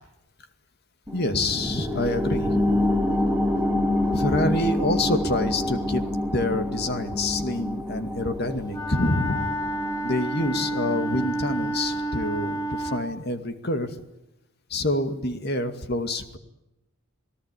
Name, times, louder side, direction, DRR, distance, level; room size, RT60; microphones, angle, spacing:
voice 1, 1.1-2.8 4.1-6.0 6.3-9.5 10.0-14.0 14.7-16.4, left 1 dB, 50° left, 8 dB, 2.3 m, -27 dB
sound 1, 1.1-12.2 12.6-12.7, left 1 dB, 10° right, 3.0 m, -27 dB
Wind instrument woodwind instrument, 8.7-13.1, right 1 dB, 20° left, 2.3 m, -29 dB
29.0 x 18.5 x 9.8 m, 0.92 s
head